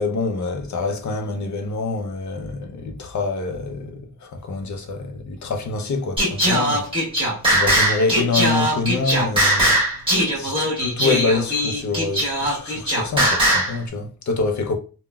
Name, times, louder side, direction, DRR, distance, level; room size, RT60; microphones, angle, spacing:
voice 1, 0.0-6.9 7.5-9.7 10.3-14.8, left 3 dB, 50° left, 0.6 m, -26 dB
Singing, 6.2-13.8, right 1 dB, 15° right, 1.2 m, -20 dB
3.6 x 2.1 x 2.2 m
wide cardioid pair, 120°, 38 cm